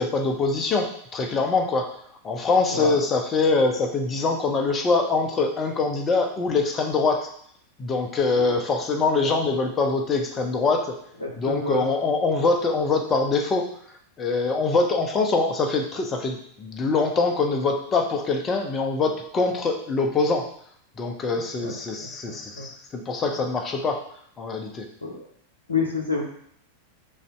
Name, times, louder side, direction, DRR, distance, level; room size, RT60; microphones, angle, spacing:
voice 1, 0.0-1.9 2.2-7.3 7.8-11.0 11.4-13.7 14.2-20.5 21.0-24.0 24.4-24.8, left 3 dB, 25° left, 3 dB, 0.6 m, -24 dB
voice 2, 11.2-11.8 21.6-21.7 22.0-22.1 22.6-22.7 23.4-23.5 25.0-25.2 25.7-26.2, left 4 dB, 75° left, -1 dB, 0.8 m, -28 dB
3.2 x 2.6 x 4.4 m, 0.65 s
figure-of-eight pair, 90°, 0 cm